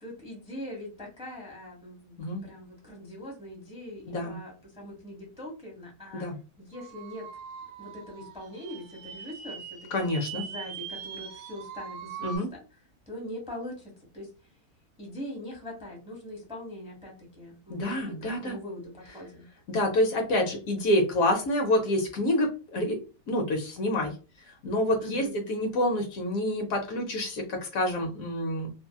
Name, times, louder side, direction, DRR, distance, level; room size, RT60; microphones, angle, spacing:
voice 1, 0.0-6.2 6.6-7.3 7.8-10.1 10.3-12.6 13.1-14.3 15.0-19.5 25.0-25.3, left 1 dB, 5° right, -2 dB, 0.7 m, -42 dB
voice 2, 4.1-4.4 6.1-6.3 9.9-10.5 12.2-12.5 17.7-18.6 19.7-23.0 23.3-24.1 24.6-28.7, left 1 dB, 70° left, 3 dB, 1.0 m, -27 dB
sound 1, 6.7-12.4, right 7 dB, 70° right, 0.9 m, -42 dB
2.8 x 2.7 x 2.2 m, 0.33 s
omnidirectional pair, 1.6 m